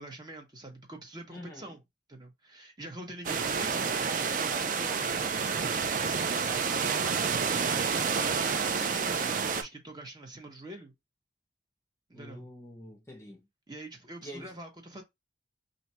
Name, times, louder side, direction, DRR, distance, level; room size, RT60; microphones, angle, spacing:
voice 1, 0.0-1.8 2.1-5.5 5.9-10.9 12.1-12.4 13.7-15.0, right 1 dB, 25° right, 0.8 m, -45 dB
voice 2, 1.3-1.7 12.1-13.5 14.2-14.5, equal, 15° left, 0.5 m, -46 dB
sound 1, 3.2-9.6, right 5 dB, 45° right, 0.4 m, -29 dB
2.6 x 2.3 x 4.1 m
head